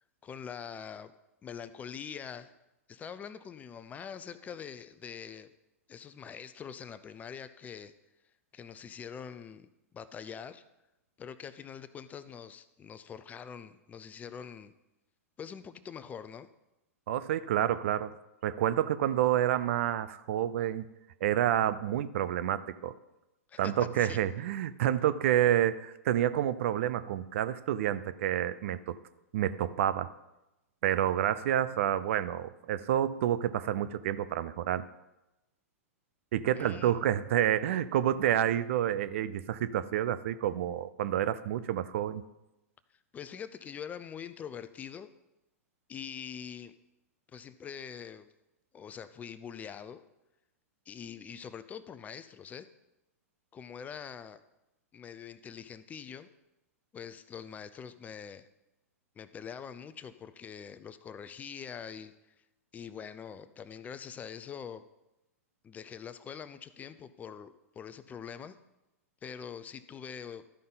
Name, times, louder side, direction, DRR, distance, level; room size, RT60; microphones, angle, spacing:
voice 1, 0.2-1.1 1.4-2.5 2.9-5.5 5.9-7.9 8.5-10.6 11.2-14.7 15.4-16.5 23.5-24.2 36.5-37.0 43.1-45.1 45.9-46.7 47.3-48.3 48.7-50.0 50.9-52.7 53.5-54.4 54.9-56.3 56.9-58.5 59.2-62.3 62.7-64.8 65.6-68.6 69.2-70.5, left 7 dB, 20° left, 13 dB, 0.4 m, -44 dB
voice 2, 17.1-18.1 18.4-20.9 21.2-23.0 23.6-29.0 29.3-30.1 30.8-34.8 36.3-42.2, right 11 dB, 60° right, 14 dB, 0.5 m, -29 dB
13.0 x 5.4 x 3.9 m, 0.95 s
hypercardioid pair, 110°, 8 cm